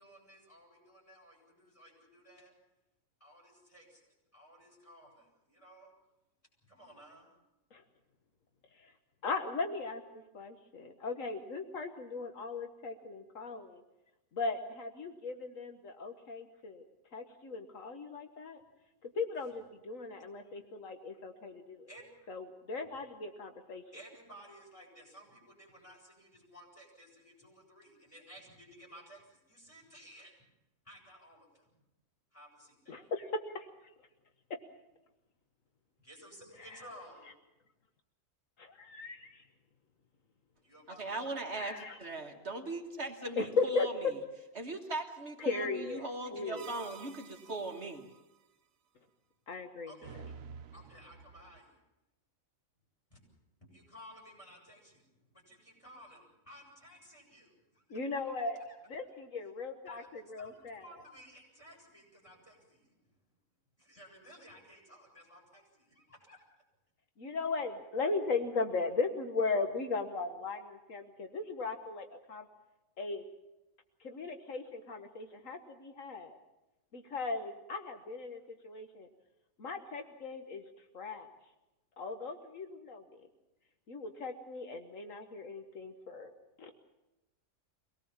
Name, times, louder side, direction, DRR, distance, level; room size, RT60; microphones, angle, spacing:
voice 1, 0.0-2.5 3.2-5.9 6.7-7.3 19.3-19.4 21.9-22.1 23.9-30.3 30.8-31.8 32.3-33.0 36.0-37.3 40.6-41.3 49.9-50.3 50.7-51.8 53.1-53.2 53.7-58.2 58.5-58.8 59.8-60.1 60.4-63.1 63.8-66.4, equal, 25° left, -2 dB, 7.9 m, -56 dB
voice 2, 9.2-13.8 14.3-16.8 17.1-18.6 19.2-21.9 22.3-23.8 32.9-33.3 33.5-33.7 36.6-36.8 38.6-39.4 41.5-42.0 43.4-43.9 45.4-46.8 49.5-49.9 57.9-58.6 58.9-60.9 67.2-72.5 73.0-73.2 74.0-76.4 76.9-79.1 79.6-80.6 80.9-81.3 82.0-83.2 83.9-86.3 86.6-86.7, left 4 dB, 75° left, 6 dB, 1.6 m, -37 dB
voice 3, 41.0-43.9 44.6-48.1, right 2 dB, 55° right, 3 dB, 1.8 m, -39 dB
sound 1, 46.5-48.2 50.0-51.6, right 6 dB, 80° right, 1.3 m, -50 dB
24.0 x 18.5 x 7.2 m, 0.99 s
omnidirectional pair, 1.4 m